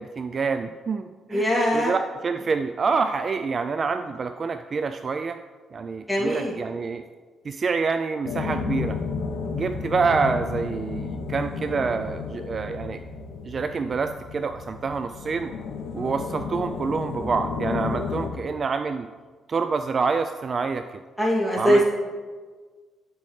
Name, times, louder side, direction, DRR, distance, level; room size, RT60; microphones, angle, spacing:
voice 1, 0.0-1.5 1.7-5.4 5.7-7.0 7.5-9.0 9.5-13.0 13.4-15.5 15.9-19.1 19.5-20.8 21.6-21.8, right 4 dB, 45° right, 8 dB, 0.3 m, -27 dB
voice 2, 1.3-1.9 6.1-6.5 9.4-9.7 15.9-16.1 21.2-21.9, equal, ahead, -5 dB, 2.5 m, -22 dB
sound 1, 8.2-18.3, left 5 dB, 80° left, 0.8 m, -32 dB
8.5 x 8.3 x 3.2 m, 1.5 s
cardioid pair, 80°, 0 cm